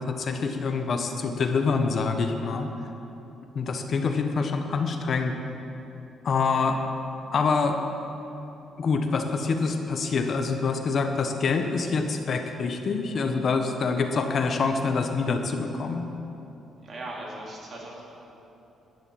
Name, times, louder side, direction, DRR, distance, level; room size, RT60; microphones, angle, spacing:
voice 1, 0.0-2.7 3.5-5.3 6.2-6.8 7.3-7.8 8.8-16.0, left 4 dB, 55° left, 5 dB, 1.2 m, -26 dB
voice 2, 16.8-18.0, right 1 dB, 45° right, -3 dB, 3.6 m, -38 dB
12.0 x 10.0 x 7.6 m, 3.0 s
cardioid pair, 90°, 0 cm